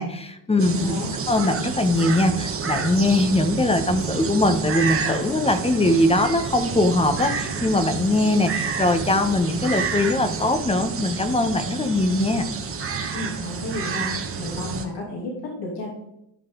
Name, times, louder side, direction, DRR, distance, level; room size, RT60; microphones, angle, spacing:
voice 1, 0.0-0.9 1.3-12.5, left 2 dB, 15° left, 9 dB, 1.1 m, -21 dB
sound 1, 0.6-14.8, right 5 dB, 30° right, 1.4 m, -29 dB
voice 2, 0.8-1.1 13.1-14.1 14.4-15.9, left 2 dB, 60° left, -2 dB, 2.9 m, -32 dB
13.0 x 5.8 x 3.9 m, 0.79 s
cardioid pair, 110°, 45 cm